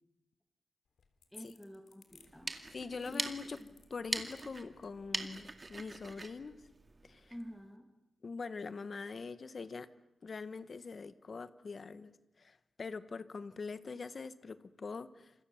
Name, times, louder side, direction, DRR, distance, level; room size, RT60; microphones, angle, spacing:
sound 1, 0.9-6.0, left 6 dB, 60° left, 3.5 m, -65 dB
voice 1, 1.3-2.5 3.1-3.3 3.6-3.7 7.3-7.9, equal, 5° left, 4 dB, 2.5 m, -49 dB
sound 2, 2.2-7.5, right 3 dB, 25° right, 2.2 m, -42 dB
voice 2, 2.7-3.6 3.9-6.6 7.0-7.3 8.2-9.9 10.2-12.1 12.4-15.3, left 4 dB, 35° left, 12 dB, 1.3 m, -43 dB
29.5 x 27.0 x 7.2 m, 0.88 s
wide cardioid pair, 175°, 0 cm